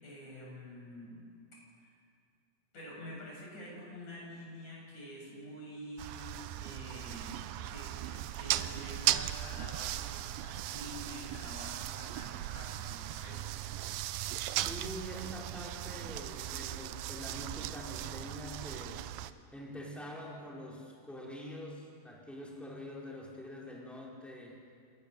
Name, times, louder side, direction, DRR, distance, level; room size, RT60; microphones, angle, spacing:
voice 1, 0.0-1.2 1.8-1.9 2.7-13.5, equal, 40° left, -3 dB, 8.0 m, -47 dB
sound 1, 6.0-19.3, right 14 dB, 85° right, 2.0 m, -37 dB
voice 2, 14.7-19.1 19.5-24.7, equal, ahead, -3 dB, 3.9 m, -45 dB
27.5 x 19.5 x 6.9 m, 2.3 s
omnidirectional pair, 4.8 m